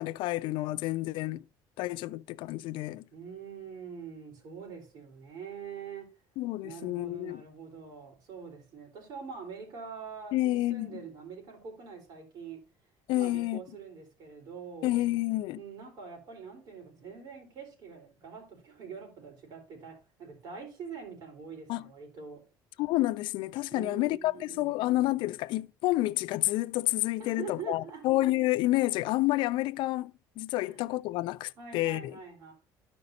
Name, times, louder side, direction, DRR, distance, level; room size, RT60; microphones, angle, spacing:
voice 1, 0.0-1.4 1.8-3.0 6.4-7.4 10.3-10.9 13.1-13.6 14.8-15.6 21.7-21.8 22.8-32.1, left 17 dB, 75° left, 0.3 m, -29 dB
voice 2, 3.1-6.1 6.6-12.6 13.1-15.0 15.6-22.4 23.7-24.9 27.2-28.0 30.6-30.8 31.6-32.5, right 6 dB, 55° right, 4.1 m, -44 dB
13.0 x 5.3 x 2.7 m
cardioid pair, 130°, 8 cm